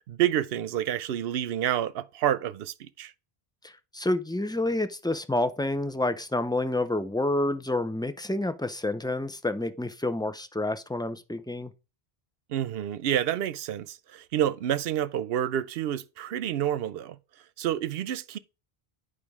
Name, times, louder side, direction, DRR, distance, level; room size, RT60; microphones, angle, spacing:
voice 1, 0.1-3.1 12.5-17.2 17.6-18.4, right 11 dB, 75° right, 0.8 m, -28 dB
voice 2, 3.6-11.7, left 2 dB, 5° left, 0.4 m, -29 dB
9.0 x 4.9 x 4.8 m
omnidirectional pair, 1.0 m